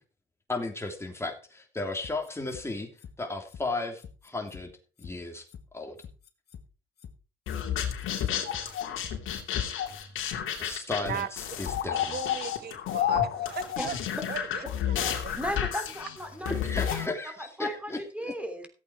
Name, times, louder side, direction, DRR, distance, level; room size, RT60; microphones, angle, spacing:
voice 1, 0.5-2.9 3.2-4.7 5.0-5.5 5.7-6.0 10.6-12.2 16.5-18.3, left 2 dB, 15° left, 3 dB, 3.1 m, -34 dB
sound 1, 2.0-2.6 3.0-3.1 3.5-3.6 4.0-4.6 5.0-5.1 5.5-5.6 6.0-6.6 7.0-7.1 7.5-7.6 8.0-8.6 9.0-9.1 9.5-9.6 10.0-10.1, left 7 dB, 55° left, 1.8 m, -46 dB
sound 2, 7.5-17.1, left 9 dB, 85° left, 2.8 m, -31 dB
voice 2, 11.9-14.0 14.3-15.0 15.2-15.4, right 8 dB, 55° right, 13 dB, 1.3 m, -38 dB
voice 3, 15.0-16.5 17.2-18.7, equal, 5° right, 6 dB, 3.2 m, -36 dB
15.0 x 8.3 x 4.7 m, 0.36 s
cardioid pair, 90°, 20 cm